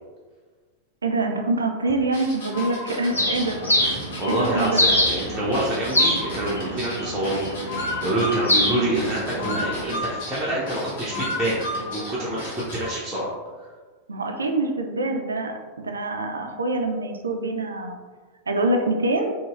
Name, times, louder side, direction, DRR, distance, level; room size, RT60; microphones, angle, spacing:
voice 1, 1.0-3.6 4.3-4.8 8.7-9.0 14.1-18.0 18.5-19.4, right 2 dB, 75° right, 4 dB, 0.3 m, -25 dB
sound 1, 2.1-12.9, left 1 dB, 55° left, 0.9 m, -33 dB
Bird, 3.1-9.8, left 1 dB, 80° left, 0.5 m, -25 dB
voice 2, 4.2-7.5 8.0-13.3, right 1 dB, 10° right, -9 dB, 0.6 m, -26 dB
3.9 x 2.0 x 2.4 m, 1.4 s
figure-of-eight pair, 90°, 0 cm